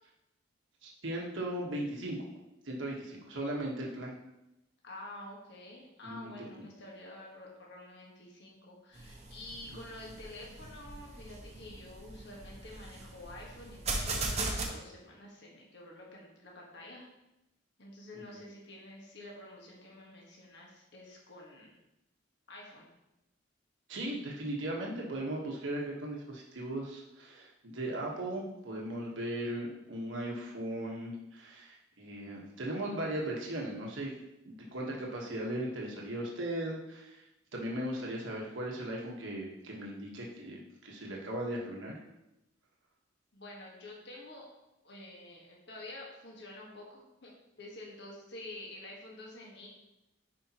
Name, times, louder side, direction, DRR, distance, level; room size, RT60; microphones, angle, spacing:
voice 1, 0.8-2.2 2.6-4.2 6.0-6.5 9.7-9.8 18.1-18.2 23.9-34.1 34.4-37.2 37.5-42.0, right 1 dB, 75° right, -2 dB, 1.3 m, -37 dB
voice 2, 4.8-13.8 14.0-17.1 17.8-21.8 22.5-22.9 43.3-44.5 44.8-47.3 47.6-49.7, left 1 dB, 60° left, -2 dB, 1.5 m, -49 dB
sound 1, 9.0-14.7, right 3 dB, 35° right, 0.9 m, -38 dB
10.0 x 5.0 x 3.0 m, 0.91 s
head